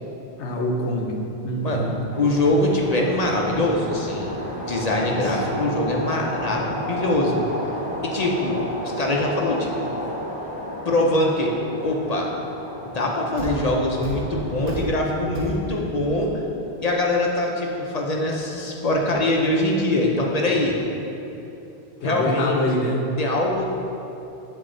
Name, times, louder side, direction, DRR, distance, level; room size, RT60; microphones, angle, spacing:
voice 1, 0.4-1.2 1.4-2.0 5.1-5.7 22.0-23.0, left 1 dB, 80° left, 1 dB, 1.1 m, -25 dB
sound 1, 2.1-14.9, equal, 10° right, 0.6 m, -32 dB
voice 2, 2.2-4.3 4.6-7.4 8.0-10.0 10.6-11.5 11.8-12.3 12.8-16.4 16.8-20.8 22.0-22.6 23.2-23.7, left 1 dB, 45° left, -1 dB, 0.7 m, -23 dB
Thump thud, 13.4-16.0, equal, 55° right, 1.1 m, -33 dB
8.1 x 4.6 x 3.8 m, 3.0 s
omnidirectional pair, 1.1 m